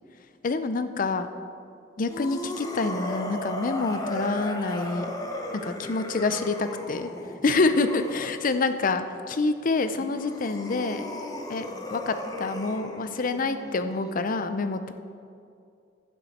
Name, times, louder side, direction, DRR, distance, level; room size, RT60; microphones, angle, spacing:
voice 1, 0.4-1.3 2.0-5.1 5.6-7.1 7.4-11.1 11.5-14.9, left 3 dB, 45° left, 10 dB, 0.5 m, -27 dB
sound 1, 2.1-8.5 9.9-14.3, left 1 dB, 20° left, 0.9 m, -36 dB
12.0 x 9.0 x 4.2 m, 2.4 s
head